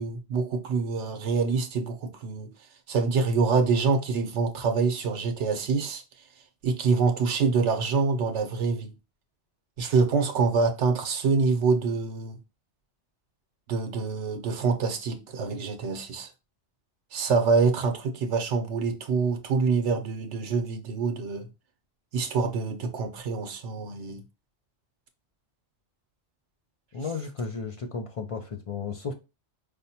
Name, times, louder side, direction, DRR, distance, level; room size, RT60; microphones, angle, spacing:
voice 1, 0.0-2.5 2.9-6.0 6.6-8.9 9.8-12.4 13.7-16.3 17.1-21.5 22.1-24.2, right 4 dB, 85° right, 1.0 m, -26 dB
voice 2, 26.9-29.1, left 5 dB, 60° left, 0.3 m, -33 dB
5.1 x 2.1 x 2.8 m
omnidirectional pair, 1.2 m